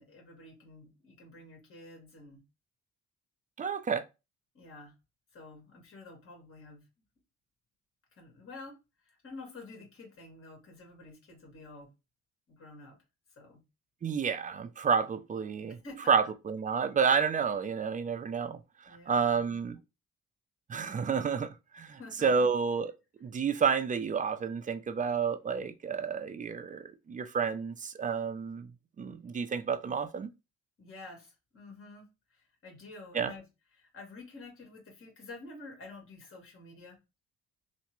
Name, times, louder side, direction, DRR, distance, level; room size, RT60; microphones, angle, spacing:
voice 1, 0.0-2.4 4.5-4.9 5.3-6.8 8.1-8.8 9.0-11.9 12.5-13.0 13.3-13.6 15.8-16.0 18.8-19.6 22.0-22.5 30.8-32.0 32.3-33.4 33.7-37.0, left 3 dB, 45° left, 1.8 m, -49 dB
voice 2, 3.6-4.0 14.0-15.8 16.1-19.8 20.7-22.9 23.2-28.7 29.0-30.3 33.1-33.3, right 6 dB, 25° right, 0.4 m, -30 dB
3.2 x 2.1 x 3.0 m
cardioid pair, 90°, 30 cm